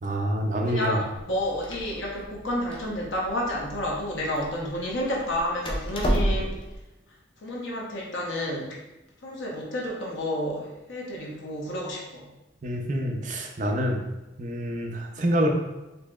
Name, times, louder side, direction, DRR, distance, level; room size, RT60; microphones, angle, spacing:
voice 1, 0.0-1.0 12.6-14.0 14.4-15.5, equal, 40° right, 1 dB, 0.5 m, -26 dB
voice 2, 0.7-6.6 7.4-8.8 9.2-12.3, left 1 dB, 80° left, -3 dB, 0.9 m, -30 dB
Door, 1.2-6.8, equal, 25° left, 0.4 m, -31 dB
4.1 x 2.8 x 2.3 m, 1.0 s
head